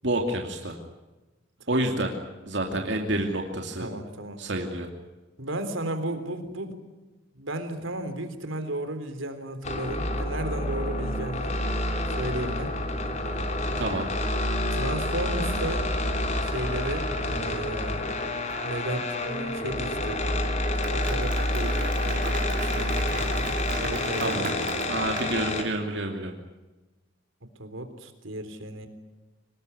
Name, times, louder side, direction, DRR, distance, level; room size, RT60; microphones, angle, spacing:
voice 1, 0.0-0.8 1.7-2.1 2.5-3.9 4.4-4.9 13.7-14.1 24.2-24.5 24.8-26.3, right 1 dB, 60° right, 2 dB, 2.6 m, -28 dB
voice 2, 1.6-2.0 3.8-4.4 5.4-6.8 7.3-11.6 12.1-12.7 14.5-15.9 16.4-18.1 18.6-20.2 20.9-23.5 23.8-24.8 27.6-28.9, right 1 dB, 85° right, 8 dB, 3.7 m, -34 dB
sound 1, 9.6-25.6, left 1 dB, 35° left, 3.1 m, -28 dB
Applause, 20.4-25.6, right 4 dB, 40° right, 5.0 m, -37 dB
25.0 x 20.0 x 9.8 m, 1.1 s
head